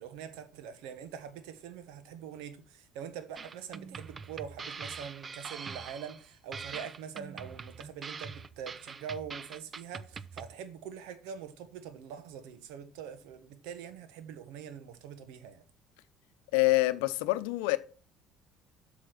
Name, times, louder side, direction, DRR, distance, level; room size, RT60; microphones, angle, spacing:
voice 1, 0.0-15.6, right 8 dB, 75° right, 1.3 m, -44 dB
sound 1, 3.4-10.5, right 5 dB, 35° right, 0.6 m, -43 dB
voice 2, 16.5-17.8, left 20 dB, 80° left, 0.7 m, -26 dB
7.8 x 6.4 x 6.1 m
hypercardioid pair, 65°, 0 cm